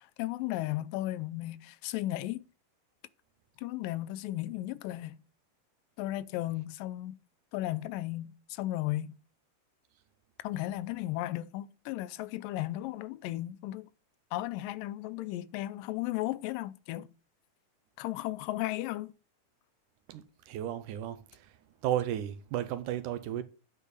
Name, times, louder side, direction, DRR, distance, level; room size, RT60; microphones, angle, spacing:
voice 1, 0.0-2.4 3.6-5.2 6.0-7.2 7.5-9.1 10.4-13.9 14.3-17.1 18.0-19.1, left 16 dB, 85° left, 2.3 m, -35 dB
voice 2, 20.1-21.5 21.8-23.4, right 11 dB, 75° right, 2.1 m, -34 dB
10.0 x 4.5 x 6.5 m
omnidirectional pair, 3.9 m